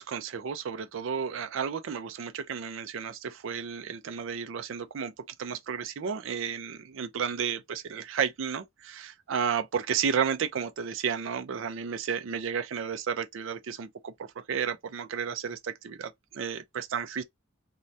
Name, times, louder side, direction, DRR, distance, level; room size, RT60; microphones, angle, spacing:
voice 1, 0.0-17.2, right 7 dB, 70° right, 0.4 m, -32 dB
2.6 x 2.2 x 3.2 m
head